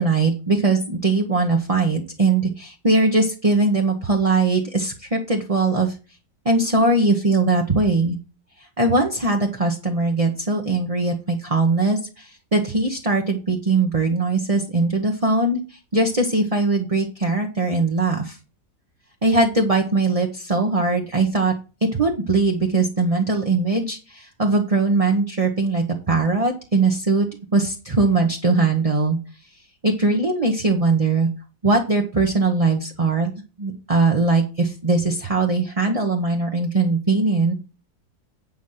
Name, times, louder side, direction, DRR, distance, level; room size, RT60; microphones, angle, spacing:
voice 1, 0.0-5.9 6.4-8.2 8.8-18.4 19.2-21.5 21.9-27.3 27.5-29.2 29.8-31.3 31.6-33.3 33.6-37.5, right 3 dB, 25° right, 2 dB, 0.9 m, -20 dB
9.4 x 5.1 x 5.8 m, 0.33 s
omnidirectional pair, 2.0 m